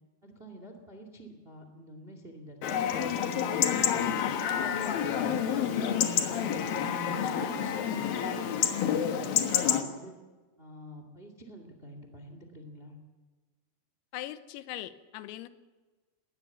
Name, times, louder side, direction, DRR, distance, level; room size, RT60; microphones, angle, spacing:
voice 1, 0.2-3.3 3.8-6.0 6.4-10.1 10.6-13.0, right 1 dB, 75° right, 5 dB, 0.5 m, -48 dB
Chatter / Livestock farm animals working animals / Chirp tweet, 2.6-9.8, left 9 dB, 65° left, 2.4 m, -28 dB
voice 2, 14.1-15.5, left 14 dB, 90° left, 12 dB, 3.7 m, -40 dB
21.0 x 18.5 x 7.2 m, 1.3 s
omnidirectional pair, 5.9 m